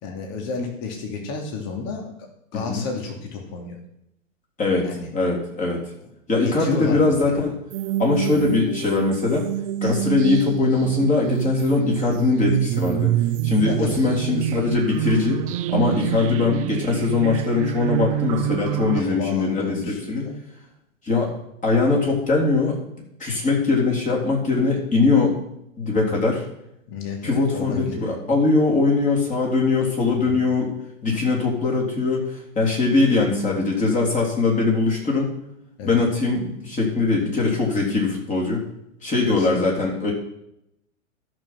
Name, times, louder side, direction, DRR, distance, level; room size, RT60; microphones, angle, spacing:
voice 1, 0.0-2.1 2.5-3.8 4.8-5.1 6.4-7.4 8.3-8.5 13.6-14.0 15.9-16.1 18.9-20.4 26.1-26.3 26.9-28.1 30.2-30.4 35.8-36.0 37.1-37.3 37.9-38.1 39.4-39.6, left 4 dB, 40° left, 1 dB, 2.7 m, -32 dB
voice 2, 5.1-5.8 6.3-7.6 8.0-9.5 9.8-13.1 13.4-15.4 15.7-20.3 21.0-21.3 21.6-22.8 23.2-25.4 25.8-26.5 27.2-30.7 31.0-35.3 35.8-38.6 39.0-40.1, left 3 dB, 20° left, -2 dB, 3.5 m, -21 dB
sound 1, 7.7-19.0, right 13 dB, 30° right, 0.4 m, -26 dB
13.5 x 6.3 x 5.9 m, 0.81 s
hypercardioid pair, 125°, 40 cm